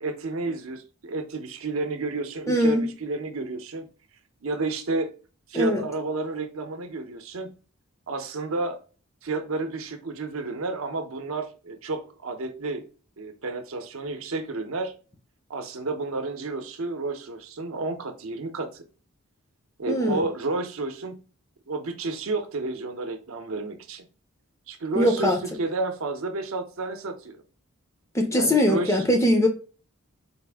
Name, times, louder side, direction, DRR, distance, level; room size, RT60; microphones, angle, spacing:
voice 1, 0.0-3.9 4.4-5.1 5.5-7.5 8.1-8.8 9.2-12.8 13.2-14.9 15.5-18.8 19.8-21.2 21.7-24.0 24.7-27.4 28.3-29.0, right 3 dB, 70° right, 0.6 m, -31 dB
voice 2, 2.5-2.9 5.5-5.8 19.9-20.2 24.9-25.4 28.1-29.5, left 1 dB, 15° left, 0.5 m, -21 dB
4.1 x 2.5 x 3.4 m
head